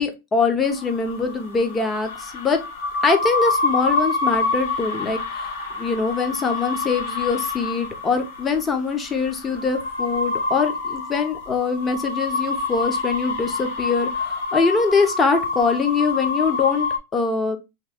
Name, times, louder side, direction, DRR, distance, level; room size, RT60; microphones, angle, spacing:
voice 1, 0.0-2.6 3.0-5.5 5.8-17.6, left 4 dB, 15° left, 6 dB, 0.6 m, -23 dB
sound 1, 0.6-17.0, left 3 dB, 65° left, 1.1 m, -27 dB
3.6 x 2.7 x 3.4 m, 0.24 s
supercardioid pair, 150°, 0 cm